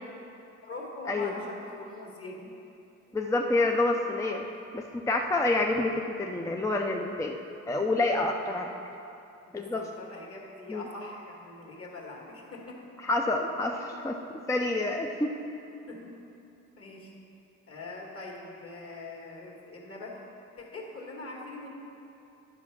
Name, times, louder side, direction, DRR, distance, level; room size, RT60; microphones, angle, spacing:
voice 1, 0.6-2.5 3.0-3.2 8.4-8.7 9.5-12.8 13.7-13.9 14.9-15.0 15.3-15.4 15.9-16.1 16.8-17.1 17.7-20.2 20.6-21.7, left 2 dB, 50° left, -1 dB, 2.0 m, -43 dB
voice 2, 3.1-4.4 4.7-7.4 7.7-8.7 9.5-9.8 10.7-10.8 13.0-14.2 14.5-15.4, left 2 dB, 10° left, 2 dB, 0.5 m, -28 dB
11.0 x 4.8 x 6.0 m, 2.8 s
cardioid pair, 90°, 30 cm